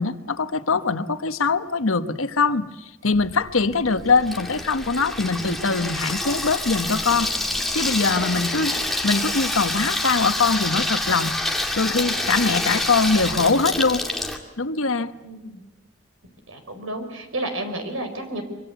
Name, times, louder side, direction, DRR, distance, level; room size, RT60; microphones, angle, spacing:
voice 1, 0.0-7.3 7.7-11.3 11.8-14.0 14.6-15.1, left 4 dB, 85° left, 11 dB, 1.2 m, -22 dB
Water tap faucet / Sink (filling or washing), 3.1-14.4, left 1 dB, ahead, 2.3 m, -27 dB
voice 2, 15.2-15.6 16.5-18.4, right 1 dB, 80° right, 6 dB, 5.1 m, -31 dB
25.0 x 24.0 x 8.2 m, 1.0 s
head